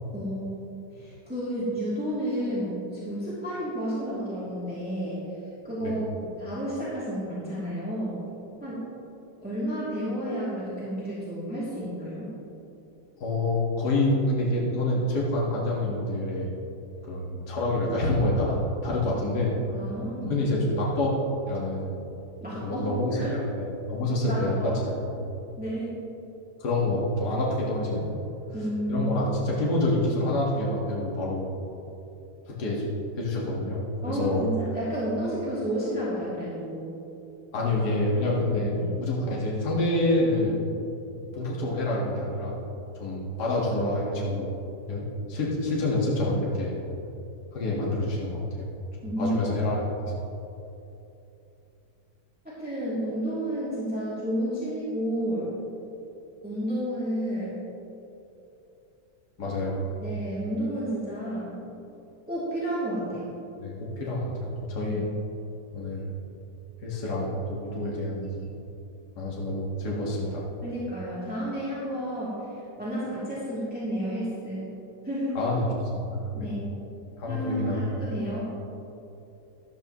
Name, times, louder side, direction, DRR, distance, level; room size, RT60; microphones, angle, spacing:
voice 1, 0.1-0.6 0.9-5.2 5.6-6.1 6.4-8.1 8.6-8.8 9.4-12.3 19.7-20.3 22.4-23.5 24.3-24.8 25.6-25.9 28.5-29.1 34.0-36.9 38.7-38.9 49.0-49.3 52.4-55.5 56.4-57.6 60.0-61.6 62.3-63.3 64.8-65.0 70.6-74.6 75.0-75.5 76.3-76.7 77.2-78.5, equal, 5° right, -10 dB, 2.7 m, -31 dB
voice 2, 13.2-16.5 17.0-19.5 20.3-21.2 21.5-21.9 22.5-25.3 26.6-28.1 28.9-31.5 32.5-32.9 33.2-34.5 37.5-40.6 41.3-42.5 43.0-44.5 44.9-46.7 47.5-48.7 49.0-50.1 59.4-60.0 63.6-65.1 65.7-66.1 66.8-68.5 69.2-70.5 75.4-75.7 75.9-76.5 77.2-77.9, left 1 dB, 55° left, -5 dB, 2.3 m, -27 dB
14.0 x 12.0 x 3.1 m, 2.9 s
omnidirectional pair, 2.2 m